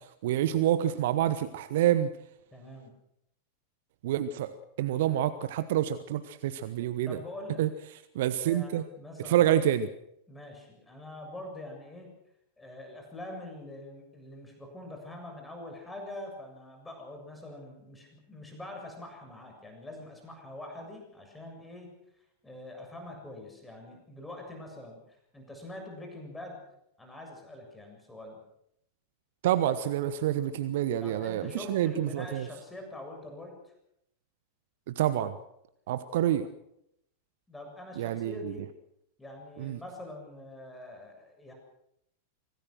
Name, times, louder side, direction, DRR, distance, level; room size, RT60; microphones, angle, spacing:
voice 1, 0.2-2.1 4.0-7.2 7.6-7.7 8.1-8.8 9.2-9.9 29.4-32.5 34.9-35.3 35.9-36.5 38.0-38.5 39.6-39.8, right 11 dB, 55° right, 13 dB, 1.1 m, -27 dB
voice 2, 2.5-2.9 7.0-7.6 8.4-9.5 10.3-12.1 12.6-21.9 22.4-26.6 27.0-28.4 31.0-33.7 37.5-38.7 39.2-41.5, left 1 dB, 10° left, 2 dB, 7.2 m, -44 dB
25.0 x 18.5 x 6.6 m, 0.79 s
figure-of-eight pair, 90°, 0 cm